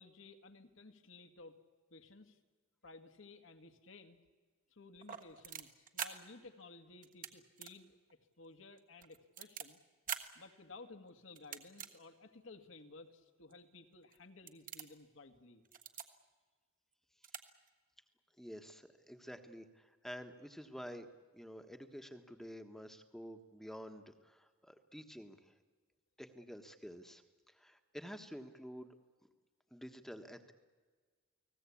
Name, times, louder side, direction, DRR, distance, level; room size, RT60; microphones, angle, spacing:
voice 1, 0.0-1.6 1.9-2.4 2.8-4.2 4.7-8.0 8.4-9.8 10.3-15.6, left 3 dB, 70° left, 7 dB, 2.0 m, -56 dB
sound 1, 5.0-6.1 7.0-7.3 7.6-7.7 8.1-8.2 8.8-9.6 10.1-10.2 11.3-11.9 12.5-12.6 13.5-13.6 14.0-14.2 14.5-15.0 15.6-16.1 16.9-17.0 17.2-17.4 17.7-17.8, right 8 dB, 40° right, 1.4 m, -44 dB
voice 2, 18.4-25.5 26.2-27.2 27.5-28.9 29.7-30.5, equal, ahead, 7 dB, 1.3 m, -50 dB
30.0 x 19.5 x 8.6 m, 1.5 s
head